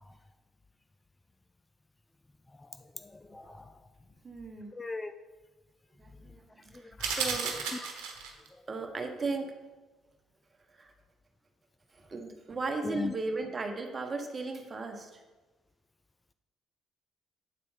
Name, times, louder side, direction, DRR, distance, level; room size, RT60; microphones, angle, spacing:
voice 1, 3.0-3.6 4.8-5.1 7.0-7.2 12.8-13.1, left 3 dB, 20° left, 0.4 m, -38 dB
voice 2, 4.2-4.7 6.0-7.6 8.7-9.6 10.8-10.9 11.9-15.2, right 3 dB, 35° right, 1.2 m, -36 dB
sound 1, 7.0-8.5, right 6 dB, 80° right, 1.0 m, -33 dB
8.4 x 4.2 x 5.6 m
supercardioid pair, 60°, 0 cm